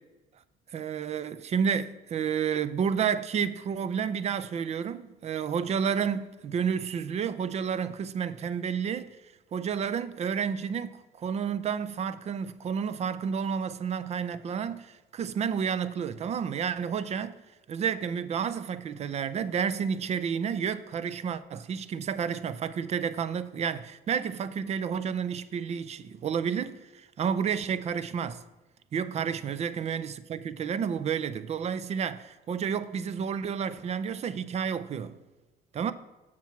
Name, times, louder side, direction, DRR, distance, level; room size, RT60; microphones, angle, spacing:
voice 1, 0.7-9.2 9.5-17.4 17.7-28.4 28.9-35.2 35.7-35.9, right 7 dB, 40° right, 0.5 m, -30 dB
7.1 x 5.9 x 4.5 m
cardioid pair, 110°, 17 cm